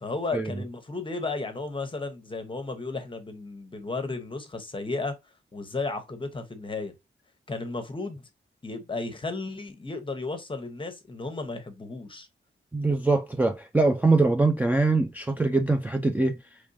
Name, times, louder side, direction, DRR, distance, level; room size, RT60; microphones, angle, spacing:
voice 1, 0.0-5.1 5.5-6.9 7.5-8.3 8.6-12.3, left 3 dB, 25° left, 0.9 m, -34 dB
voice 2, 12.7-16.4, right 3 dB, 10° right, 0.3 m, -23 dB
5.1 x 3.1 x 2.6 m
wide cardioid pair, 145°, 20 cm